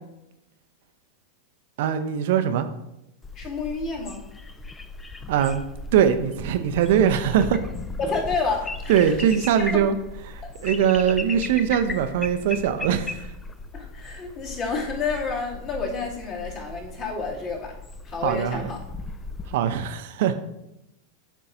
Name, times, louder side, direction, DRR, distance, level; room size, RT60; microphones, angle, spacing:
voice 1, 1.8-2.7 5.3-5.6 5.9-7.6 8.9-9.9 10.3-13.3 18.2-18.7 19.5-20.3, right 9 dB, 55° right, 9 dB, 0.5 m, -22 dB
sound 1, 3.2-19.5, left 3 dB, 15° left, 0.4 m, -37 dB
voice 2, 3.3-4.2 8.0-9.8 10.4-10.5 13.7-17.8 18.0-18.8, left 4 dB, 40° left, -4 dB, 2.4 m, -30 dB
11.5 x 5.5 x 2.6 m, 0.87 s
figure-of-eight pair, 90°, 0 cm